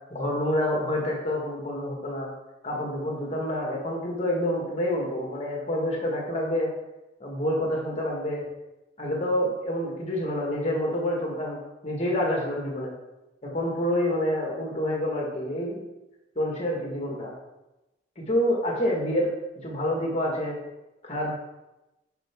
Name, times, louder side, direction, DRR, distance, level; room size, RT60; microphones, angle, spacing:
voice 1, 0.1-2.3 2.6-6.7 7.2-8.5 9.0-12.9 13.4-15.8 16.4-17.3 18.2-19.3 19.6-20.6 21.0-21.3, left 1 dB, 35° left, -1 dB, 1.9 m, -27 dB
10.5 x 5.7 x 3.8 m, 0.99 s
head